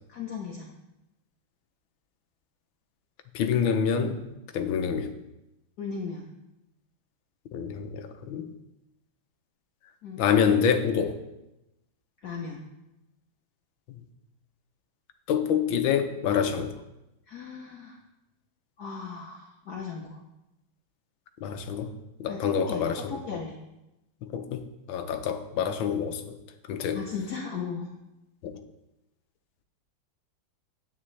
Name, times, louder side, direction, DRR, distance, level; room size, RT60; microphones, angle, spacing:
voice 1, 0.1-0.7 5.8-6.3 10.0-10.3 12.2-12.6 17.3-18.0 18.8-20.2 22.3-23.6 26.9-27.9, left 5 dB, 60° left, 0 dB, 1.2 m, -37 dB
voice 2, 3.3-4.2 4.5-5.1 7.5-8.5 10.2-11.2 13.9-14.0 15.3-16.8 21.4-21.9 22.2-23.4 24.2-26.4 26.7-27.0 28.4-28.5, left 7 dB, 75° left, 7 dB, 1.5 m, -27 dB
9.9 x 8.7 x 3.2 m, 0.93 s
omnidirectional pair, 2.3 m